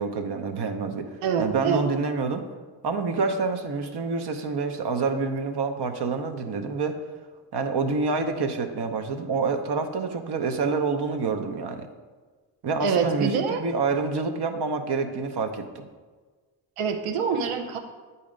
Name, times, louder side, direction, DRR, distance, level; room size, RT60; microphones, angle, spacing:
voice 1, 0.0-1.1 1.4-2.4 2.8-7.0 7.5-11.9 12.6-15.8, right 4 dB, 55° right, 6 dB, 0.8 m, -27 dB
voice 2, 1.2-1.9 12.8-13.6 16.8-17.8, right 6 dB, 90° right, 6 dB, 0.7 m, -25 dB
8.3 x 2.8 x 5.0 m, 1.4 s
supercardioid pair, 55°, 50 cm